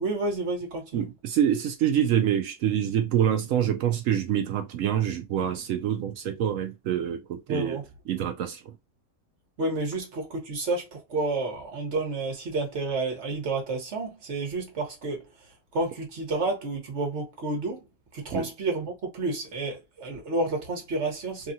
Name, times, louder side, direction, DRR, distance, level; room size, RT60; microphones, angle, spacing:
voice 1, 0.0-1.0 7.5-7.8 9.6-15.3 15.7-17.8 18.1-21.5, right 2 dB, 55° right, 1.4 m, -30 dB
voice 2, 0.9-7.8 8.1-8.7 18.3-18.5, right 10 dB, 70° right, 0.9 m, -26 dB
3.5 x 2.3 x 2.6 m
omnidirectional pair, 1.5 m